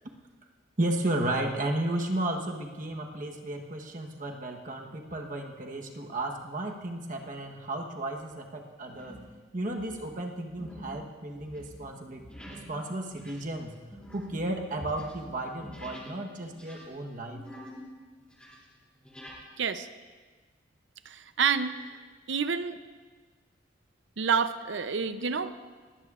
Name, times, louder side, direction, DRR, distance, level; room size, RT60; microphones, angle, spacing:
voice 1, 0.8-9.2 9.5-13.7 14.1-17.4, right 1 dB, 45° right, 2 dB, 1.1 m, -33 dB
sound 1, 7.3-7.5 8.0-8.3 8.9-9.3 9.6-16.2 16.5-17.9 18.2-19.4, equal, 5° left, 2.9 m, -47 dB
voice 2, 19.6-19.9 21.1-21.8 22.3-22.8 24.2-25.6, right 6 dB, 65° right, 11 dB, 0.6 m, -28 dB
20.0 x 16.5 x 2.5 m, 1.4 s
head